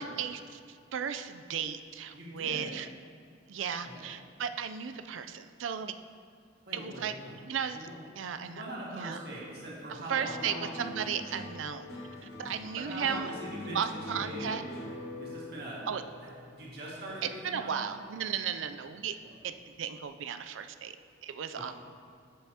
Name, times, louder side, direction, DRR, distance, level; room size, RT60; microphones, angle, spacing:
voice 1, 0.0-2.9 3.5-5.9 6.7-7.1 7.5-7.9 8.1-8.6 8.9-9.2 10.1-12.0 12.4-13.3 13.7-14.6 15.9-16.0 17.2-19.2 19.4-19.5 19.8-20.9 21.2-21.7, right 7 dB, 80° right, 9 dB, 0.4 m, -35 dB
voice 2, 2.1-2.7 3.8-4.0 6.7-7.4 7.7-7.9 8.4-10.7 12.8-13.8 14.1-14.6 15.2-15.8 16.2-17.8 21.6-21.7, right 1 dB, 55° right, -5 dB, 1.9 m, -42 dB
sound 1, 10.1-18.6 18.9-19.6, left 1 dB, 55° left, 1.3 m, -44 dB
13.0 x 5.6 x 2.8 m, 2.3 s
head